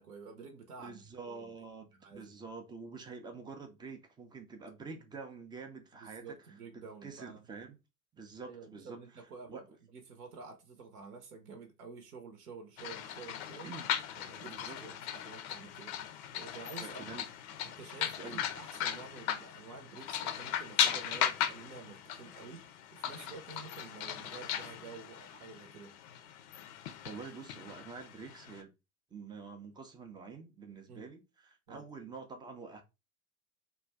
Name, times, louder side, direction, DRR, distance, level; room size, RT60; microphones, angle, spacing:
voice 1, 0.0-1.5 1.9-2.3 6.0-7.5 8.4-13.7 14.2-16.0 16.3-17.1 17.6-26.0 30.9-31.0 31.7-31.8, right 5 dB, 75° right, 0.7 m, -50 dB
voice 2, 0.8-6.4 6.7-7.8 8.1-9.0 9.5-9.6 13.6-13.9 14.4-14.8 16.8-17.3 18.1-18.4 27.0-28.7 29.1-32.8, right 4 dB, 10° right, 0.3 m, -47 dB
sound 1, 12.8-28.6, left 10 dB, 50° left, 0.5 m, -37 dB
2.6 x 2.2 x 3.3 m
figure-of-eight pair, 75°, 45 cm